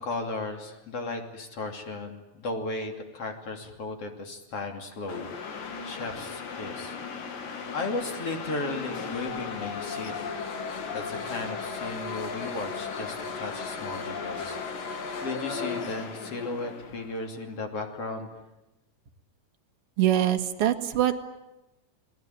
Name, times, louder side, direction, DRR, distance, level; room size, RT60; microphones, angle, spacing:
voice 1, 0.0-7.0 7.7-10.1 10.9-18.3, left 3 dB, 45° left, 4 dB, 3.6 m, -35 dB
sound 1, 5.1-17.4, left 5 dB, 90° left, 4.2 m, -36 dB
voice 2, 20.0-21.2, right 11 dB, 50° right, 5 dB, 2.3 m, -24 dB
28.5 x 19.0 x 9.3 m, 0.98 s
omnidirectional pair, 3.8 m